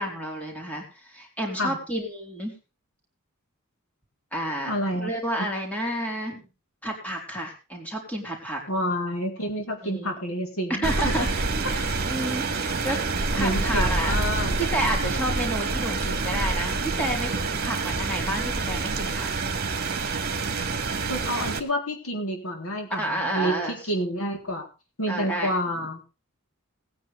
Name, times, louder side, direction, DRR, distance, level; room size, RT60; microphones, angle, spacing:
voice 1, 0.0-2.5 4.3-6.4 6.8-8.6 9.8-10.1 10.8-14.1 14.5-17.3 17.6-19.3 22.9-23.7 25.1-25.5, right 1 dB, 5° left, 0 dB, 4.1 m, -30 dB
voice 2, 4.7-5.1 5.4-5.5 8.7-10.9 12.9-13.0 13.4-14.5 21.1-24.7 25.0-26.0, equal, 75° left, 3 dB, 3.8 m, -29 dB
Rain, 10.8-21.6, right 3 dB, 50° right, 2.2 m, -27 dB
20.0 x 9.5 x 3.5 m, 0.31 s
head